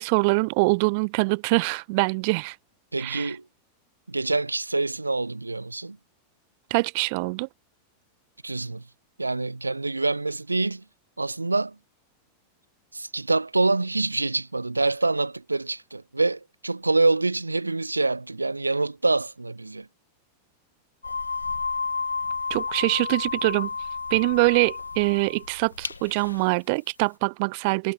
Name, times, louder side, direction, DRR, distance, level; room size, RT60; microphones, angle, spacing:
voice 1, 0.0-2.6 3.0-3.3 6.7-7.5 22.5-23.7 24.1-27.9, right 29 dB, 45° right, 0.5 m, -24 dB
voice 2, 2.9-3.5 4.1-6.0 8.4-8.8 9.2-10.8 11.2-11.8 12.9-19.9, right 3 dB, 80° right, 0.7 m, -26 dB
sound 1, 21.0-26.5, left 4 dB, 75° left, 1.8 m, -31 dB
figure-of-eight pair, 90°, 0 cm